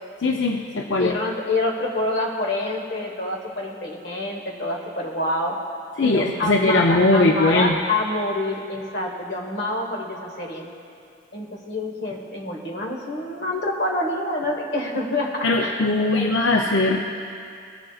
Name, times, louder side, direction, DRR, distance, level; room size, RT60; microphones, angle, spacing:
voice 1, 0.2-1.2 6.0-7.8 15.4-17.0, left 2 dB, 90° left, 1 dB, 0.6 m, -20 dB
voice 2, 1.0-5.6 6.0-10.7 11.3-16.3, left 2 dB, 65° left, 0 dB, 1.4 m, -27 dB
19.5 x 7.6 x 2.4 m, 2.4 s
head